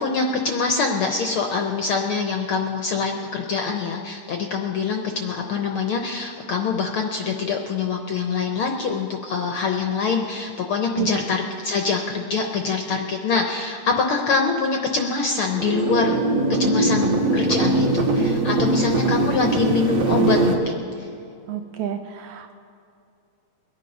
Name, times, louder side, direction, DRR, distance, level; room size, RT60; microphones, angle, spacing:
voice 1, 0.0-16.1 16.5-21.1, left 4 dB, 75° left, 3 dB, 1.3 m, -24 dB
sound 1, 15.5-20.5, right 2 dB, 65° right, 2.4 m, -21 dB
voice 2, 21.5-22.6, right 10 dB, 85° right, 7 dB, 1.4 m, -29 dB
22.5 x 9.1 x 5.4 m, 2.5 s
omnidirectional pair, 3.4 m